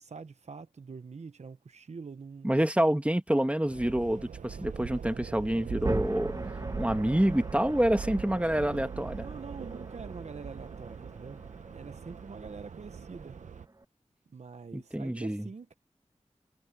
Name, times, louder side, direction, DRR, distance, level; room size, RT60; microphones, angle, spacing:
voice 1, 0.0-2.7 9.2-11.4 11.7-13.4 14.3-15.8, right 5 dB, 65° right, 1.0 m, -45 dB
voice 2, 2.4-6.3 6.8-9.3 14.7-15.5, right 1 dB, 10° right, 1.3 m, -27 dB
sound 1, 3.7-13.7, right 6 dB, 90° right, 0.7 m, -41 dB
sound 2, 5.8-13.8, right 2 dB, 30° right, 1.4 m, -41 dB
cardioid pair, 45°, 12 cm